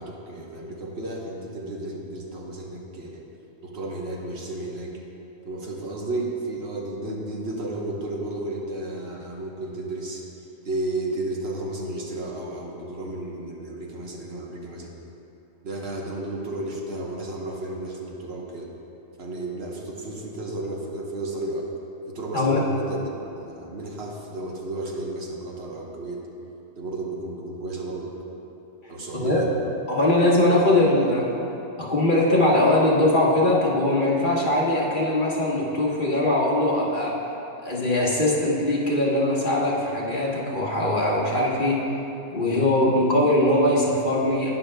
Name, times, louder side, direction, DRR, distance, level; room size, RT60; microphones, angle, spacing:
voice 1, 0.0-3.2 3.6-5.0 5.4-10.2 10.6-14.9 15.6-18.7 19.2-21.7 22.1-26.2 26.8-28.1 28.9-29.5, right 2 dB, 70° right, -1 dB, 1.3 m, -33 dB
voice 2, 29.9-31.2 31.8-37.1 37.6-41.8 42.3-44.5, left 1 dB, 50° left, -4 dB, 1.3 m, -21 dB
11.5 x 9.4 x 2.2 m, 2.9 s
omnidirectional pair, 1.1 m